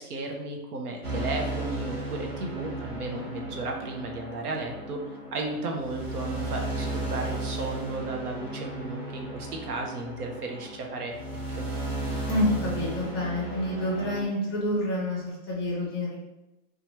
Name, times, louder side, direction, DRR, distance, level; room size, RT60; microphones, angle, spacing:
voice 1, 0.0-5.0 5.3-11.2 11.6-11.7, right 2 dB, 75° right, 2 dB, 0.8 m, -34 dB
sound 1, 1.0-14.2, right 2 dB, 40° right, 1.3 m, -35 dB
voice 2, 12.3-16.1, left 1 dB, 15° left, -5 dB, 0.5 m, -28 dB
2.8 x 2.3 x 3.0 m, 0.98 s
hypercardioid pair, 165°, 45 cm